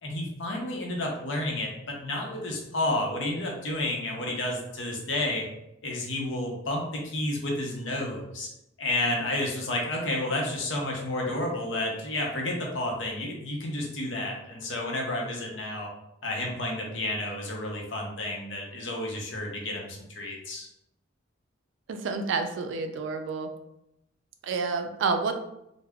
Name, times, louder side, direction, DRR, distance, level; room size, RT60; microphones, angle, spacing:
voice 1, 0.0-5.4 5.8-8.5 8.8-15.9 16.2-20.7, left 1 dB, 70° left, 0 dB, 0.7 m, -31 dB
voice 2, 21.9-23.5 24.4-25.3, right 4 dB, 70° right, 6 dB, 0.3 m, -29 dB
3.4 x 2.0 x 2.2 m, 0.84 s
head